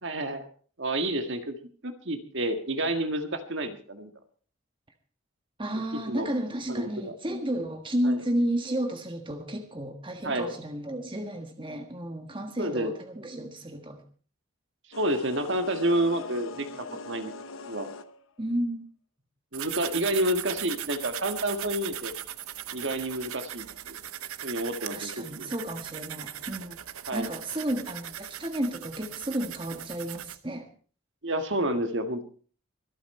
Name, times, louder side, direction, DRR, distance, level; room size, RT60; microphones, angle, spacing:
voice 1, 0.0-0.4 0.8-1.5 1.8-4.1 5.9-6.3 6.7-7.1 8.0-8.2 10.2-10.6 12.6-12.9 14.9-17.3 17.7-17.9 19.5-22.1 22.7-24.0 24.4-25.5 27.1-27.3 31.2-32.2, right 1 dB, 55° right, 7 dB, 1.7 m, -29 dB
voice 2, 5.6-14.0 18.4-18.9 24.9-26.7 27.1-30.7, right 1 dB, 25° right, 5 dB, 1.4 m, -32 dB
sound 1, 14.9-18.4, left 4 dB, 70° left, 0.9 m, -42 dB
sound 2, 19.5-30.4, right 11 dB, 85° right, 0.8 m, -39 dB
24.0 x 8.6 x 4.3 m, 0.41 s
head